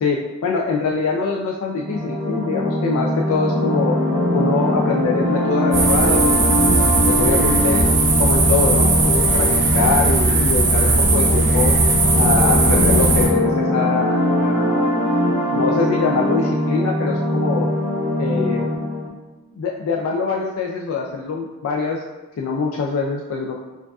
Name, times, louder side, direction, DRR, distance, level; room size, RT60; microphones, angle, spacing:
voice 1, 0.0-4.0 4.3-7.8 8.2-11.7 12.1-14.9 15.5-17.7 18.2-18.6 19.5-22.0 22.4-23.6, left 4 dB, 70° left, -1 dB, 0.3 m, -23 dB
sound 1, 1.7-19.1, left 1 dB, 15° right, 0.6 m, -21 dB
sound 2, 5.7-13.3, right 3 dB, 55° right, 0.7 m, -18 dB
4.6 x 2.4 x 2.3 m, 1.1 s
head